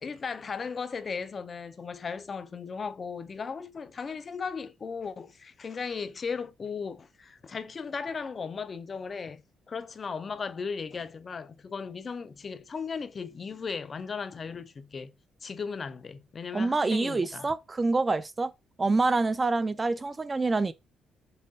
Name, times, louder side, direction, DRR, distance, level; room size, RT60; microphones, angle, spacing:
voice 1, 0.0-9.4 9.7-15.1 15.4-17.5, left 5 dB, 40° left, 0.4 m, -36 dB
voice 2, 16.5-18.5 18.8-20.7, right 3 dB, 25° right, 0.4 m, -26 dB
5.4 x 2.2 x 2.6 m
cardioid pair, 90°, 0 cm